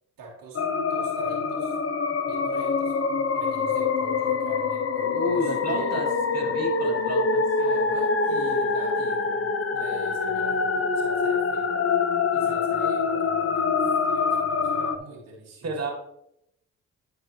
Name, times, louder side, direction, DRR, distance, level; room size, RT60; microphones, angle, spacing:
voice 1, 0.2-0.6 0.9-1.8 2.1-3.0 3.3-6.0 7.6-11.8 12.3-15.8, right 2 dB, 80° right, -4 dB, 2.4 m, -44 dB
sound 1, 0.6-15.0, left 4 dB, 45° left, 0.9 m, -25 dB
voice 2, 5.0-7.4 15.6-15.9, right 1 dB, 50° right, 1 dB, 2.5 m, -31 dB
13.0 x 4.7 x 3.2 m, 0.79 s
supercardioid pair, 55°, 33 cm